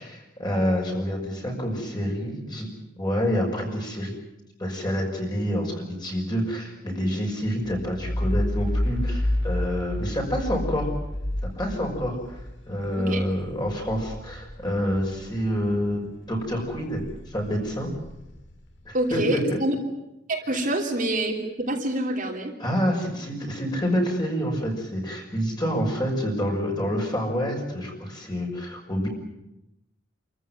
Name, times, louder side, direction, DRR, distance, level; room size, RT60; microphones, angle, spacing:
voice 1, 0.0-2.7 3.0-4.1 4.6-10.9 11.4-12.4 12.7-17.9 18.8-19.6 20.5-20.6 22.6-29.1, equal, 20° left, 0 dB, 6.1 m, -27 dB
sound 1, 7.6-15.9 16.3-18.9, left 1 dB, 55° left, 2.5 m, -31 dB
voice 2, 18.9-19.7 20.3-22.5, right 1 dB, 40° right, 0 dB, 3.1 m, -26 dB
28.0 x 15.0 x 9.4 m, 0.91 s
head